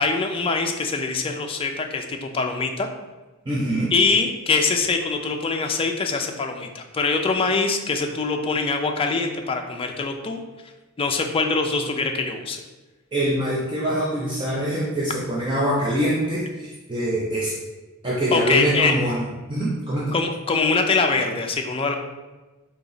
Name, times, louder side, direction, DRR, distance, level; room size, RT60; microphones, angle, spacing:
voice 1, 0.0-2.9 3.9-10.4 11.0-12.6 18.3-18.9 20.1-21.9, left 4 dB, 25° left, 3 dB, 0.4 m, -23 dB
voice 2, 3.5-3.9 13.1-17.6 18.0-20.2, right 1 dB, 25° right, -5 dB, 0.6 m, -24 dB
4.0 x 2.9 x 3.9 m, 1.2 s
head